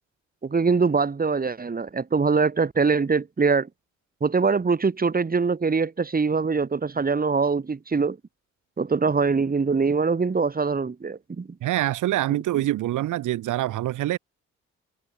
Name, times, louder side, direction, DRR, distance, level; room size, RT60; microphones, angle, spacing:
voice 1, 0.4-3.7 4.2-8.2 8.8-11.5, right 4 dB, 30° right, 4.0 m, -23 dB
voice 2, 11.6-14.2, right 14 dB, 85° right, 3.6 m, -25 dB
cardioid pair, 90°, 30 cm